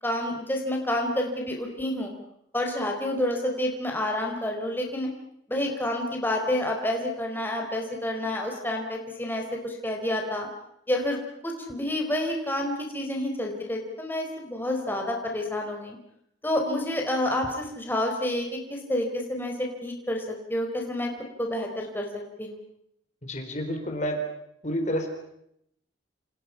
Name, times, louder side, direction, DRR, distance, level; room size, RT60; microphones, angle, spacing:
voice 1, 0.0-2.1 2.5-5.1 5.5-10.5 10.9-16.0 16.4-21.1 21.4-22.1 22.4-22.6, left 1 dB, 10° left, 1 dB, 4.2 m, -29 dB
voice 2, 23.2-24.2 24.6-25.1, equal, 35° left, 4 dB, 4.1 m, -29 dB
29.0 x 28.5 x 5.8 m, 0.75 s
head